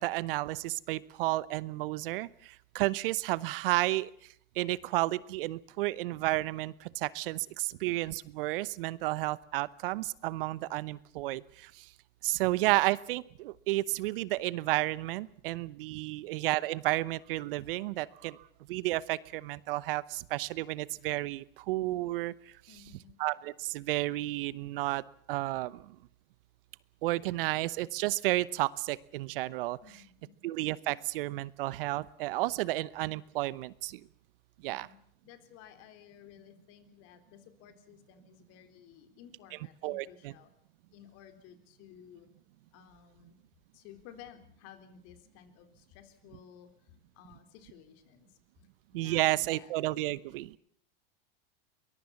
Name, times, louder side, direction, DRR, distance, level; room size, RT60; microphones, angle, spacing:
voice 1, 0.0-4.1 4.6-11.9 12.2-18.4 18.7-22.3 23.2-25.0 25.3-26.0 27.0-29.8 30.4-34.0 34.6-34.9 39.8-40.3 48.9-50.5, right 18 dB, 65° right, 20 dB, 0.9 m, -32 dB
voice 2, 22.7-23.2 29.8-30.4 34.7-40.5 40.9-42.3 42.7-43.4 43.7-48.4 48.9-49.7, left 9 dB, 55° left, 8 dB, 3.8 m, -55 dB
23.0 x 21.5 x 7.2 m, 0.64 s
hypercardioid pair, 105°, 30 cm